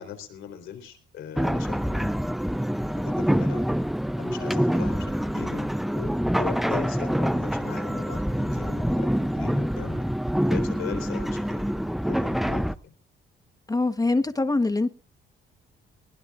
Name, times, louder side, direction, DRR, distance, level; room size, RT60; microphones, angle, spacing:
voice 1, 0.0-2.1 3.2-3.7 4.2-10.0 10.5-11.8 12.1-12.9, left 9 dB, 85° left, 5 dB, 4.0 m, -39 dB
sound 1, 1.4-12.7, equal, ahead, 0.6 m, -26 dB
voice 2, 13.7-14.9, left 2 dB, 20° left, 9 dB, 1.2 m, -23 dB
20.0 x 19.5 x 2.5 m, 0.35 s
cardioid pair, 90°, 20 cm